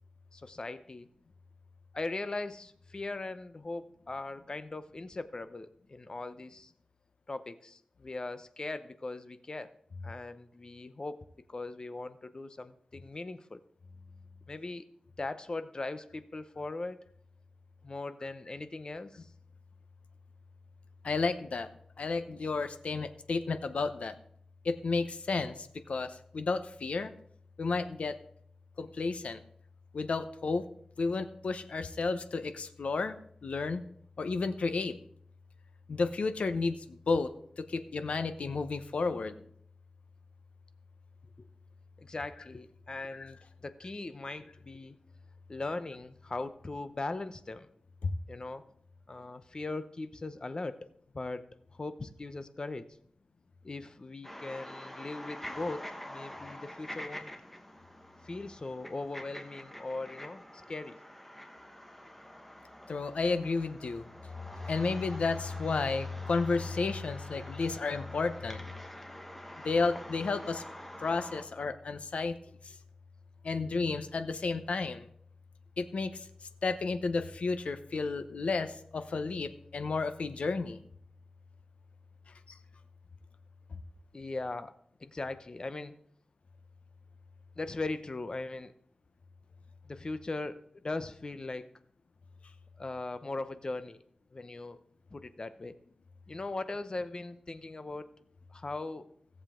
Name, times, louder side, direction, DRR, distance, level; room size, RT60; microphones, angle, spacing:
voice 1, 0.3-1.1 1.9-6.7 7.3-9.7 10.0-11.2 11.5-13.6 14.5-14.8 15.2-17.0 17.8-19.3 42.0-45.0 45.5-47.7 48.3-48.6 49.1-50.9 51.1-51.5 51.8-52.9 53.6-55.8 56.1-57.3 58.2-61.0 84.1-84.7 85.0-85.9 87.6-88.7 89.9-90.6 90.8-91.7 92.8-94.0 94.3-94.8 95.1-95.7 96.3-98.1 98.5-99.1, left 2 dB, 40° left, 11 dB, 0.7 m, -39 dB
voice 2, 21.0-21.7 22.0-24.1 24.6-27.1 27.6-28.2 28.8-29.4 29.9-30.6 31.0-33.8 34.2-35.0 35.9-36.8 37.1-37.3 37.7-39.3 43.1-43.3 48.0-48.1 62.9-64.0 64.7-68.6 69.6-70.6 71.0-72.4 73.4-75.1 75.8-76.1 76.6-80.8, left 4 dB, 90° left, 9 dB, 0.8 m, -32 dB
sound 1, 54.2-71.4, equal, 10° left, 1.2 m, -46 dB
17.0 x 7.3 x 3.7 m, 0.65 s
wide cardioid pair, 100°, 2 cm